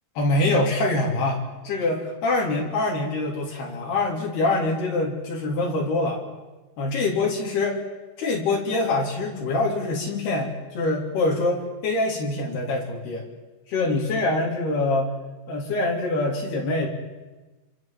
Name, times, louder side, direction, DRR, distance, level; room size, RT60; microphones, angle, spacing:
voice 1, 0.2-6.2 6.8-7.8 8.2-13.3 13.7-15.1 15.5-16.9, left 2 dB, 75° left, -2 dB, 5.4 m, -24 dB
27.0 x 26.5 x 7.7 m, 1.2 s
omnidirectional pair, 4.6 m